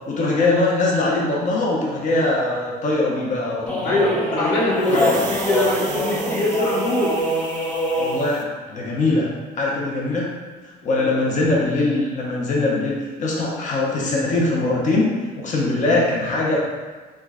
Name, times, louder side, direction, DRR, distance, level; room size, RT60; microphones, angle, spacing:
voice 1, 0.1-4.0 4.4-4.5 4.9-5.2 8.0-9.3 9.6-10.3 10.8-15.1 15.4-16.6, left 2 dB, 45° left, -4 dB, 0.7 m, -22 dB
sound 1, 3.7-8.3, equal, 10° left, 0.6 m, -24 dB
voice 2, 3.8-7.1 10.9-11.3, left 1 dB, 85° left, -4 dB, 0.9 m, -22 dB
sound 2, 4.8-8.5, right 6 dB, 50° right, 0.4 m, -36 dB
3.0 x 2.3 x 3.5 m, 1.4 s
cardioid pair, 110°, 17 cm